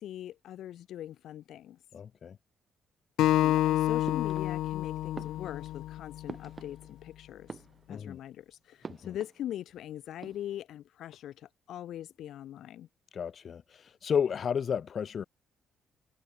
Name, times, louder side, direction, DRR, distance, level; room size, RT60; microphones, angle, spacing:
voice 1, 0.0-1.8 3.2-12.9, left 12 dB, 65° left, 4.0 m, -41 dB
voice 2, 1.9-2.4 7.9-8.2 8.9-9.2 13.1-15.2, left 7 dB, 35° left, 3.0 m, -32 dB
Acoustic guitar, 3.2-6.5, left 14 dB, 85° left, 0.6 m, -28 dB
sound 1, 4.0-4.8 5.1-7.1 7.4-8.2 8.8-9.8 10.1-10.6, right 5 dB, 25° right, 7.4 m, -47 dB
cardioid pair, 170°, 0 cm